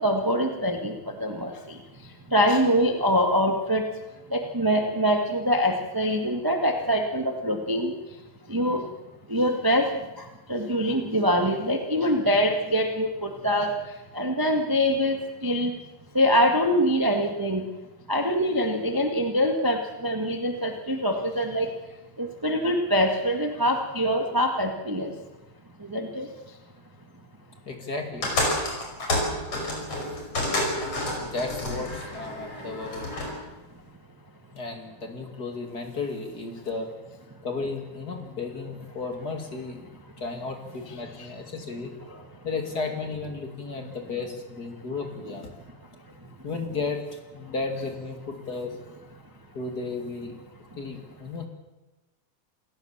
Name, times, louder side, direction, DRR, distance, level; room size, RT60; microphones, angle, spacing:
voice 1, 0.0-1.8 2.3-3.8 4.3-7.9 8.5-8.8 9.3-9.9 10.2-13.7 14.1-15.7 16.1-17.6 18.1-21.7 22.2-25.1 25.8-26.3 40.9-41.3 42.1-42.2, equal, 10° right, 4 dB, 1.2 m, -24 dB
voice 2, 27.7-28.3 31.2-33.1 34.5-36.9 37.4-39.8 40.2-41.9 42.4-45.5 46.4-48.7 49.5-50.4 50.8-51.5, left 3 dB, 35° left, 4 dB, 2.8 m, -34 dB
sound 1, 28.2-33.4, left 1 dB, 55° left, 6.6 m, -29 dB
28.0 x 16.5 x 7.4 m, 1.1 s
omnidirectional pair, 3.3 m